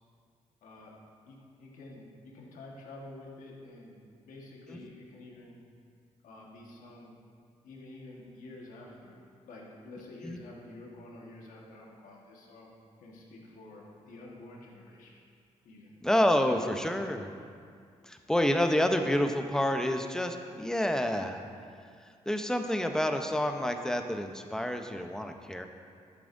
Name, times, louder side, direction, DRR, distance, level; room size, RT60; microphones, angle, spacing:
voice 1, 0.6-0.9 1.3-5.6 6.2-7.1 7.6-12.7 13.0-15.1 15.6-15.9, left 2 dB, 85° left, -2 dB, 1.5 m, -49 dB
voice 2, 16.0-17.3 18.0-21.4 22.0-25.7, left 1 dB, 5° left, 5 dB, 0.8 m, -28 dB
11.5 x 8.6 x 2.7 m, 2.2 s
supercardioid pair, 55°, 13 cm